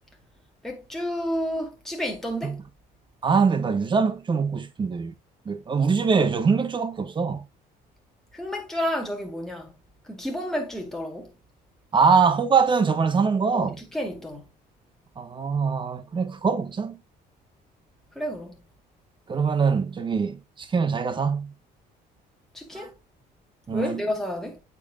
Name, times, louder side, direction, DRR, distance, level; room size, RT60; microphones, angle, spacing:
voice 1, 0.6-2.6 8.3-9.7 10.1-11.3 13.5-14.5 18.1-18.6 22.5-22.9 23.7-24.6, equal, ahead, 1.5 m, -31 dB
voice 2, 3.2-5.1 5.5-7.4 11.9-13.8 15.2-17.0 19.3-21.5 22.7-22.9 23.7-24.0, right 5 dB, 30° right, 1.0 m, -23 dB
8.2 x 5.3 x 2.4 m
cardioid pair, 110°, 17 cm